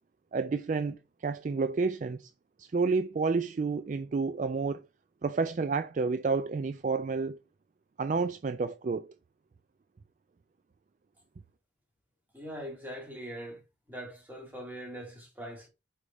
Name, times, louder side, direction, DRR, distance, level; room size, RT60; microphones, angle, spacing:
voice 1, 0.3-2.3 2.6-4.8 5.2-7.4 8.0-9.1, right 4 dB, 40° right, 0.3 m, -30 dB
voice 2, 12.3-13.6 13.9-15.7, equal, 10° right, 2.0 m, -42 dB
5.0 x 4.9 x 4.1 m
head